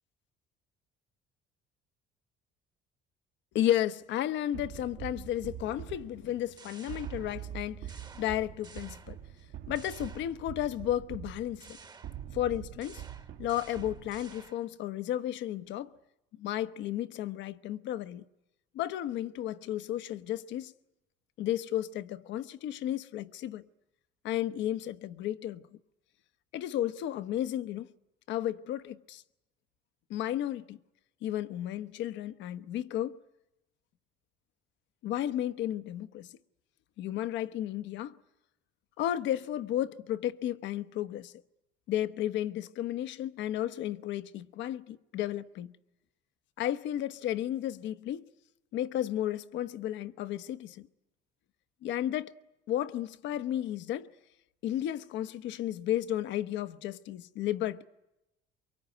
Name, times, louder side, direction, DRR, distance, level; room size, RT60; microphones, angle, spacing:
voice 1, 3.5-9.2 9.7-11.8 12.3-13.0 13.4-15.9 16.4-18.2 18.7-20.7 21.4-23.6 24.2-25.6 26.5-27.9 28.3-29.2 30.1-30.8 31.2-33.2 35.0-36.3 37.0-38.2 39.0-41.3 41.9-45.7 46.6-48.3 48.7-50.9 51.8-52.3 52.7-54.1 54.6-57.9, left 12 dB, 70° left, 1.1 m, -33 dB
sound 1, 4.5-14.5, right 10 dB, 80° right, 2.2 m, -44 dB
sound 2, 6.3-7.6 7.9-9.4 9.8-10.8 11.6-14.8, right 4 dB, 20° right, 1.1 m, -54 dB
24.0 x 23.0 x 9.4 m
cardioid pair, 140°, 20 cm